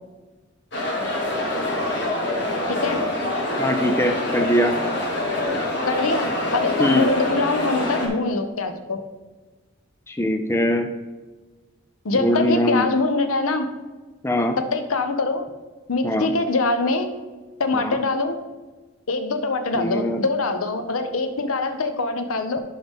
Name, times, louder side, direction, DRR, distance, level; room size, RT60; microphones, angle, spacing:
sound 1, 0.7-8.1, left 1 dB, 55° left, 1.4 m, -25 dB
voice 1, 3.6-4.7 6.8-7.1 10.1-10.9 12.1-12.9 14.2-14.6 16.0-16.3 17.7-18.0 19.7-20.2, equal, 10° left, 6 dB, 0.4 m, -22 dB
voice 2, 5.9-9.0 12.0-13.7 14.6-15.5 15.9-17.1 17.6-18.4 19.1-22.6, left 3 dB, 90° left, 8 dB, 0.8 m, -23 dB
11.0 x 3.9 x 3.5 m, 1.2 s
head